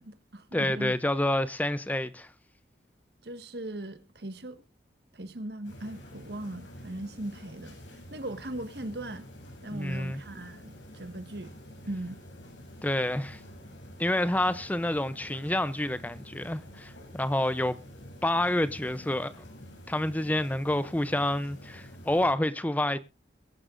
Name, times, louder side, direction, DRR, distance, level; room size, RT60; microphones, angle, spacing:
voice 1, 0.0-0.9 3.2-4.6 5.1-7.8 8.1-9.3 9.6-11.5 11.9-12.2, right 1 dB, 60° right, 1.6 m, -39 dB
voice 2, 0.5-2.3 9.7-10.2 12.8-13.4 14.0-17.8 18.2-19.3 19.9-23.0, left 1 dB, 10° left, 0.5 m, -28 dB
sound 1, 5.6-22.3, equal, 85° left, 6.9 m, -48 dB
23.0 x 11.0 x 2.5 m
head